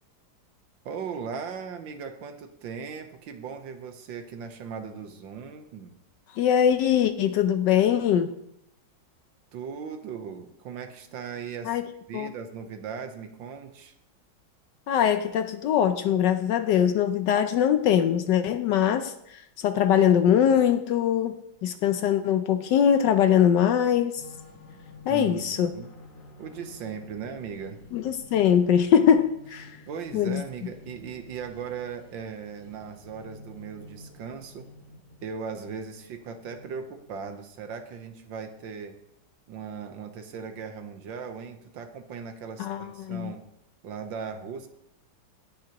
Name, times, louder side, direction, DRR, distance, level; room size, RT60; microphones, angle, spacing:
voice 1, 0.8-6.0 9.5-11.8 12.1-13.9 25.1-25.9 26.4-27.8 29.9-34.7 35.2-39.0 39.5-43.5 43.8-44.7, right 6 dB, 75° right, 7 dB, 1.6 m, -38 dB
voice 2, 6.3-8.3 11.6-11.9 12.1-12.3 14.9-24.2 25.1-25.7 27.9-29.7 30.1-30.4 42.6-43.3, left 9 dB, 70° left, 10 dB, 1.1 m, -22 dB
sound 1, 24.1-37.4, left 2 dB, 35° left, 1.8 m, -50 dB
18.0 x 6.2 x 2.9 m, 0.81 s
omnidirectional pair, 2.2 m